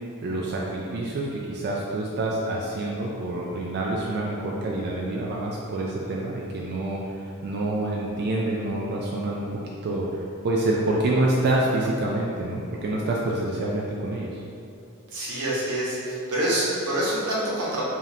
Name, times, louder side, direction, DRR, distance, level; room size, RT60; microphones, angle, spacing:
voice 1, 0.2-7.0 7.4-14.3, right 2 dB, 50° right, -3 dB, 0.4 m, -27 dB
voice 2, 15.1-17.8, right 1 dB, 90° right, -7 dB, 1.1 m, -26 dB
5.0 x 2.7 x 2.7 m, 2.6 s
head